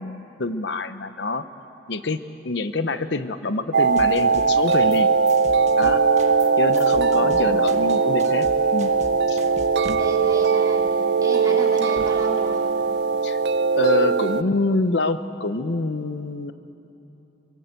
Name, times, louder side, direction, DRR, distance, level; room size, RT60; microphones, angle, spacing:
voice 1, 0.0-1.4 1.9-5.1 5.8-6.0 6.6-8.5 8.7-8.9 9.3-9.4 13.2-13.4 13.8-16.5, left 3 dB, 75° left, 11 dB, 0.9 m, -26 dB
sound 1, 3.7-14.4, right 5 dB, 65° right, 0.6 m, -20 dB
sound 2, 4.0-5.0 5.3-10.0, right 2 dB, 40° right, 1.4 m, -40 dB
voice 2, 7.0-7.6 9.9-10.9 11.2-12.7, right 1 dB, 20° right, -1 dB, 3.1 m, -35 dB
sound 3, 9.8-10.3 11.1-12.5 13.2-13.3, right 1 dB, 85° right, 1.1 m, -38 dB
26.0 x 23.0 x 8.2 m, 2.9 s
head